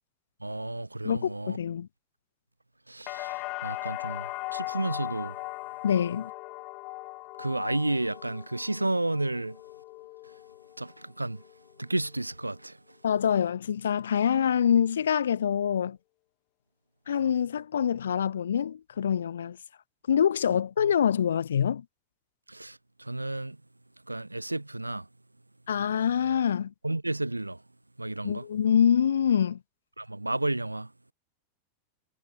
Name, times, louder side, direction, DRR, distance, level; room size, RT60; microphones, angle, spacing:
voice 1, 0.4-1.6 2.9-5.3 7.4-9.6 10.8-11.4 11.8-12.8 20.5-20.6 22.5-23.6 24.1-25.1 26.8-27.6 28.0-28.5 30.0-30.9, right 2 dB, 85° right, 1.0 m, -32 dB
voice 2, 1.0-1.9 5.8-6.3 13.0-16.0 17.1-19.6 20.1-21.8 25.7-26.7 28.2-29.6, left 8 dB, 65° left, 0.4 m, -25 dB
sound 1, 3.1-11.0 11.3-12.0, left 23 dB, 40° left, 1.2 m, -39 dB
figure-of-eight pair, 90°, 0 cm